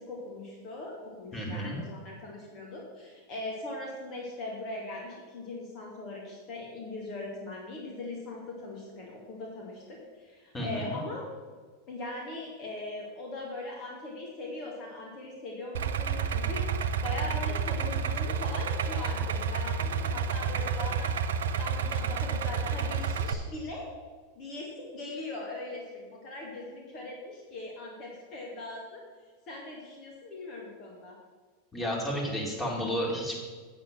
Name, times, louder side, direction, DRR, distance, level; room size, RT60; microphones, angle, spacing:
voice 1, 0.0-11.3 11.9-16.7 17.0-21.1 21.6-23.9 24.4-29.0 29.5-31.2, left 2 dB, 45° left, -2 dB, 2.0 m, -40 dB
voice 2, 1.3-1.8 10.5-10.8 31.7-33.4, equal, 15° left, -2 dB, 2.8 m, -31 dB
Idling, 15.7-23.3, right 5 dB, 75° right, 0.5 m, -30 dB
7.8 x 7.7 x 6.0 m, 1.5 s
hypercardioid pair, 95°, 0 cm